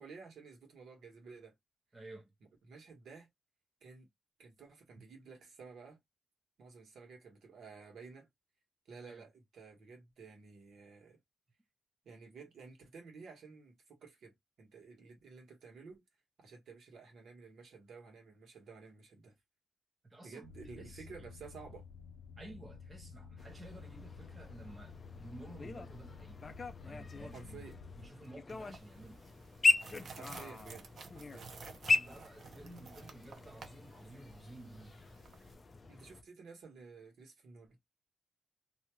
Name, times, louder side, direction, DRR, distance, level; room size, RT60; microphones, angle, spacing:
voice 1, 0.0-1.5 2.6-3.3 3.8-4.1 4.4-6.0 6.6-8.3 8.9-11.2 12.0-16.0 16.4-19.3 20.2-21.9 27.3-27.8 30.1-30.9 31.1-31.5 35.9-37.8, right 5 dB, 75° right, 1.3 m, -53 dB
voice 2, 1.9-2.3 9.0-9.2 20.1-20.5 20.8-21.1 22.4-26.5 26.8-27.6 28.0-29.2 32.0-35.0, right 2 dB, 20° right, 0.7 m, -52 dB
sound 1, 20.4-28.1, left 6 dB, 90° left, 0.6 m, -52 dB
sound 2, 23.4-36.2, left 3 dB, 30° left, 0.4 m, -38 dB
sound 3, 28.5-35.5, right 4 dB, 50° right, 0.7 m, -53 dB
2.7 x 2.3 x 3.0 m
wide cardioid pair, 150°, 0 cm